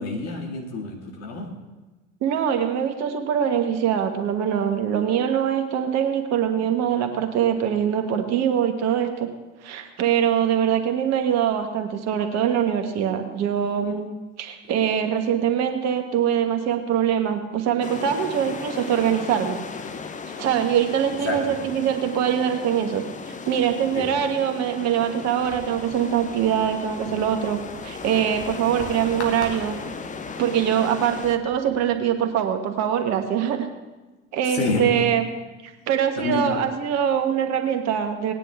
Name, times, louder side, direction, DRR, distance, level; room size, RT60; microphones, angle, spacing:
voice 1, 0.0-1.6 21.1-21.6 23.9-24.2 34.5-35.1 36.2-36.7, left 2 dB, 50° left, 1 dB, 2.1 m, -28 dB
voice 2, 2.2-9.3 9.6-14.1 14.4-19.6 20.4-29.8 30.4-33.7 34.3-35.2 35.9-38.3, right 9 dB, 50° right, 5 dB, 1.5 m, -23 dB
sound 1, 17.8-31.4, left 5 dB, 20° left, 0.9 m, -36 dB
sound 2, 25.4-32.0, left 2 dB, 80° left, 1.7 m, -43 dB
17.5 x 10.0 x 3.6 m, 1.2 s
figure-of-eight pair, 65°, 34 cm